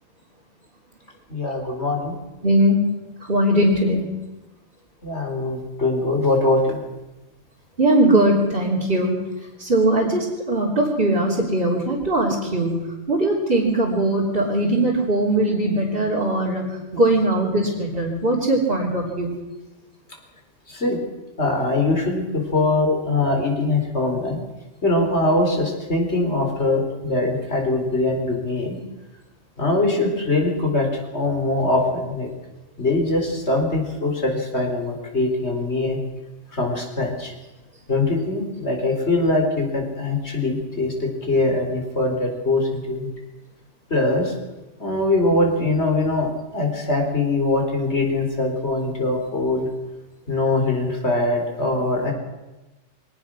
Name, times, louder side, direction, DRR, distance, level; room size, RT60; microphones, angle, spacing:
voice 1, 1.3-2.2 5.0-6.8 20.7-21.0 21.4-24.4 24.8-28.8 29.6-30.9 31.1-32.3 32.8-36.0 36.5-37.3 37.9-43.1 43.9-44.3 44.8-46.3 46.5-49.7 50.3-52.1, left 2 dB, 55° left, 2 dB, 4.5 m, -22 dB
voice 2, 2.4-2.8 3.3-4.1 7.8-9.1 9.6-16.6 16.9-19.3, right 1 dB, 45° right, -5 dB, 3.7 m, -20 dB
23.5 x 18.5 x 6.3 m, 1.1 s
omnidirectional pair, 1.3 m